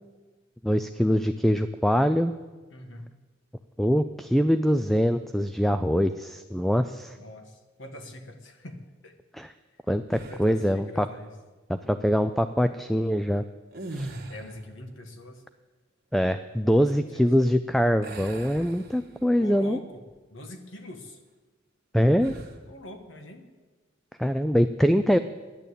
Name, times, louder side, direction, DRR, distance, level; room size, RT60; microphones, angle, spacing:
voice 1, 0.6-2.3 3.8-7.2 9.3-9.5 9.9-11.1 11.7-13.4 13.9-14.1 16.1-19.8 21.9-22.4 24.2-25.2, equal, ahead, 10 dB, 0.3 m, -23 dB
voice 2, 2.7-3.1 7.2-9.1 10.3-11.3 14.3-15.4 16.6-17.2 19.4-20.0 20.3-21.2 22.7-23.4, left 1 dB, 70° left, 6 dB, 1.6 m, -43 dB
sound 1, 10.1-10.7 13.6-14.7 18.0-19.4 19.9-20.1 22.1-22.6, right 2 dB, 55° right, 1.6 m, -40 dB
11.5 x 10.5 x 8.4 m, 1.3 s
head